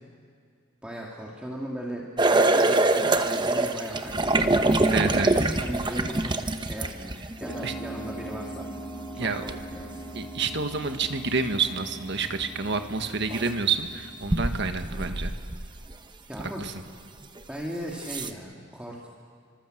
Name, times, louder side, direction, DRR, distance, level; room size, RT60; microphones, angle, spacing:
voice 1, 0.8-7.1 7.4-8.7 9.1-10.0 16.3-16.7 17.5-19.1, equal, 5° right, -3 dB, 2.2 m, -38 dB
sound 1, 2.2-7.5 9.5-9.6 12.4-12.5 13.3-13.6 14.2-15.9 16.4-16.5 17.4-17.5 18.0-18.3, right 2 dB, 20° right, 1.0 m, -24 dB
voice 2, 4.9-5.3 7.6-7.7 9.2-9.4 10.1-15.3 16.6-16.7, right 4 dB, 55° right, 7 dB, 1.5 m, -28 dB
sound 2, 7.4-15.5, right 2 dB, 15° left, 2.8 m, -41 dB
29.5 x 25.0 x 7.8 m, 2.2 s
head